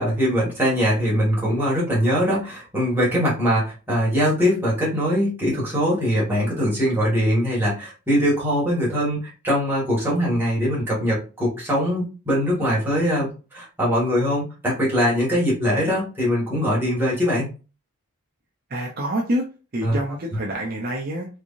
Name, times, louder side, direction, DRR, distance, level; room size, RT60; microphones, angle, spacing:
voice 1, 0.0-17.5 19.8-20.0, equal, 10° right, -6 dB, 1.7 m, -22 dB
voice 2, 18.7-19.4 19.7-21.3, right 1 dB, 40° right, -1 dB, 0.6 m, -26 dB
3.5 x 3.3 x 2.6 m, 0.33 s
head